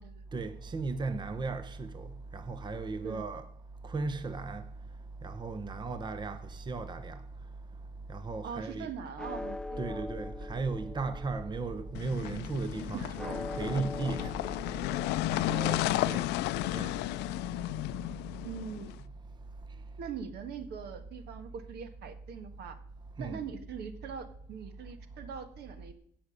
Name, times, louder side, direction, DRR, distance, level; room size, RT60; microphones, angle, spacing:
voice 1, 0.3-3.5 3.8-4.7 5.2-7.2 8.1-8.9 9.8-14.5 15.3-16.3 16.6-17.0 23.2-23.4, right 3 dB, 25° right, 0.9 m, -36 dB
voice 2, 8.4-10.0 12.9-13.2 15.6-16.1 18.4-18.9 20.0-22.7 23.2-25.9, right 7 dB, 75° right, 1.6 m, -42 dB
sound 1, 9.2-19.6, left 2 dB, 5° left, 0.6 m, -44 dB
sound 2, 11.9-18.9, left 17 dB, 90° left, 0.4 m, -33 dB
16.5 x 6.0 x 6.6 m
cardioid pair, 110°, 17 cm